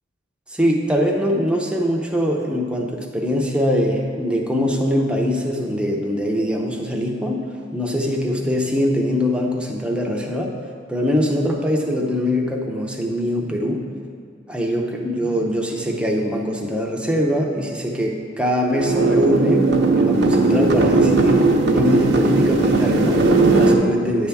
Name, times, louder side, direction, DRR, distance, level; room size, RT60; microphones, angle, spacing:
voice 1, 0.5-10.5 10.9-13.9 14.5-19.7 19.9-24.3, equal, 5° right, 0 dB, 0.7 m, -22 dB
sound 1, 18.7-23.7, right 3 dB, 60° right, 0.7 m, -17 dB
10.5 x 3.5 x 6.9 m, 2.1 s
head